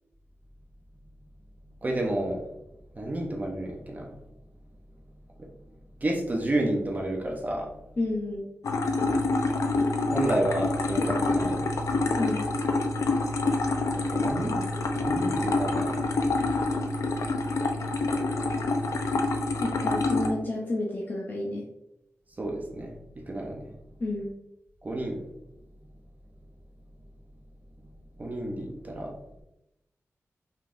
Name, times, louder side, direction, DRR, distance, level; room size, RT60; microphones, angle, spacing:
voice 1, 1.8-2.4 3.0-4.1 5.4-5.5 6.0-7.7 10.1-11.9 13.9-14.6 14.9-16.0 22.4-22.9 23.3-23.7 24.8-25.2 28.2-29.1, right 1 dB, 30° right, 0 dB, 0.7 m, -30 dB
voice 2, 8.0-8.5 12.2-12.5 19.6-21.6 24.0-24.3, left 2 dB, 40° left, -2 dB, 0.6 m, -30 dB
sound 1, 8.6-20.3, left 3 dB, 90° left, 0.5 m, -27 dB
5.5 x 3.5 x 2.5 m, 0.87 s
wide cardioid pair, 155°, 5 cm